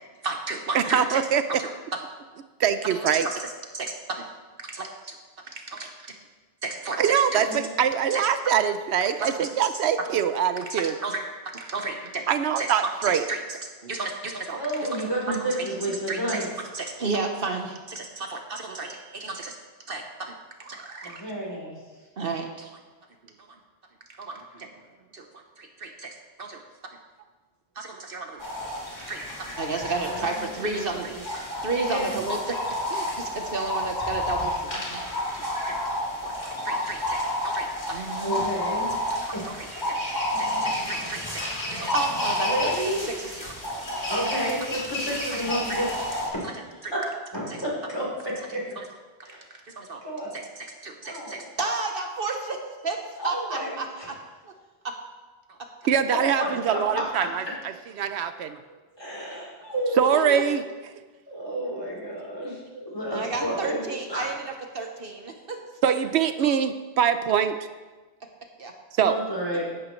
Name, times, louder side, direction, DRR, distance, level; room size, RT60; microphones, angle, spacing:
voice 1, 0.2-1.2 1.6-1.7 2.9-4.3 4.7-4.9 5.7-5.9 6.6-7.4 8.1-8.2 9.2-9.5 10.7-11.2 11.4-12.2 12.6-14.9 15.3-15.6 16.1-16.5 16.7-19.6 19.9-20.3 20.6-21.2 22.2-22.7 24.1-24.8 25.1-25.2 25.6-26.6 27.8-28.4 29.1-29.2 29.5-31.2 31.6-32.6 32.9-35.0 35.3-35.8 36.2-38.4 39.1-40.0 40.4-44.0 45.7-45.8 46.8-46.9 47.5-47.6 48.8-48.9 49.3-49.4 49.8-50.0 50.3-54.2 54.4-54.5 54.8-54.9 55.5-55.6 58.5-58.6 59.3-59.4 60.1-60.2 63.1-65.6 68.6-68.7, right 3 dB, 60° right, 3 dB, 1.1 m, -33 dB
voice 2, 0.7-1.4 2.6-3.3 7.0-10.9 12.3-13.2 55.9-57.4 58.0-58.6 60.0-60.6 65.8-67.6 69.0-69.2, right 8 dB, 80° right, 11 dB, 0.9 m, -23 dB
voice 3, 14.6-16.5 21.0-21.8 30.0-31.2 31.7-32.2 38.2-38.9 39.3-39.6 42.4-43.1 44.1-45.9 46.3-46.5 47.3-48.6 49.2-49.4 50.0-50.3 51.0-51.4 53.2-54.1 56.1-57.0 58.9-60.5 61.3-63.8 64.1-64.3 66.4-66.5 69.0-69.6, right 1 dB, 25° left, -5 dB, 3.7 m, -31 dB
sound 1, 28.4-46.3, left 1 dB, 45° left, 2.9 m, -30 dB
15.0 x 11.0 x 3.2 m, 1.3 s
omnidirectional pair, 1.1 m